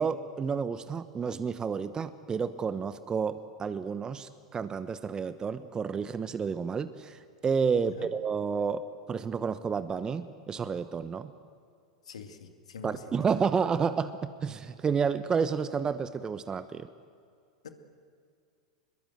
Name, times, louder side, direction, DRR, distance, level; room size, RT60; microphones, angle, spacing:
voice 1, 0.0-11.3 12.8-16.9, right 6 dB, 20° right, 12 dB, 0.9 m, -30 dB
voice 2, 7.7-8.1 12.1-13.0 17.6-17.7, left 6 dB, 75° left, 6 dB, 2.3 m, -45 dB
26.0 x 21.5 x 8.1 m, 2.3 s
hypercardioid pair, 95°, 3 cm